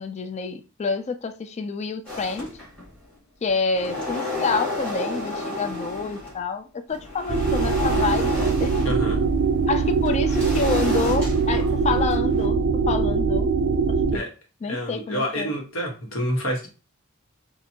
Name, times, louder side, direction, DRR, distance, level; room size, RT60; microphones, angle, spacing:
voice 1, 0.0-2.5 3.4-8.3 8.6-8.7 9.7-13.5 14.1-14.2 14.6-15.5, left 4 dB, 30° left, 0.3 m, -28 dB
sound 1, 2.0-3.0 3.5-6.4 6.9-12.5, left 2 dB, 5° left, 1.8 m, -32 dB
sound 2, 7.3-14.2, right 4 dB, 55° right, 0.4 m, -22 dB
voice 2, 8.8-9.2 14.1-14.3 14.6-16.7, equal, 65° left, 1.2 m, -28 dB
4.2 x 2.5 x 2.8 m
head